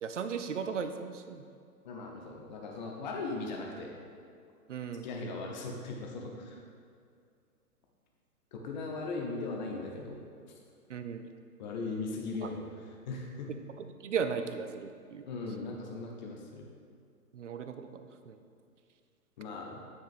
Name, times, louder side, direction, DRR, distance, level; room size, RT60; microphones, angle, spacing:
voice 1, 0.0-1.4 4.7-5.1 10.9-11.3 13.8-15.2 17.3-18.4, right 6 dB, 55° right, 8 dB, 0.5 m, -36 dB
voice 2, 1.8-3.9 5.0-6.6 8.5-10.2 11.6-13.5 15.3-16.7 19.4-19.8, left 3 dB, 30° left, 0 dB, 0.8 m, -38 dB
9.3 x 5.0 x 2.5 m, 2.4 s
figure-of-eight pair, 125°, 47 cm